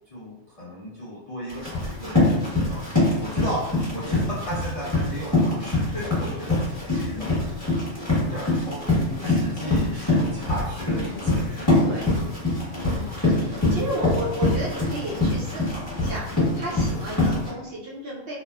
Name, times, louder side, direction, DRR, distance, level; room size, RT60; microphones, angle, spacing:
voice 1, 0.1-7.3 8.1-12.3, equal, 65° left, -7 dB, 0.3 m, -35 dB
Run, 1.5-17.5, left 2 dB, 15° left, 0.9 m, -24 dB
voice 2, 11.0-11.3 11.8-12.1 12.7-18.4, right 1 dB, 60° right, -5 dB, 0.7 m, -33 dB
2.9 x 2.1 x 2.2 m, 0.90 s
omnidirectional pair, 1.3 m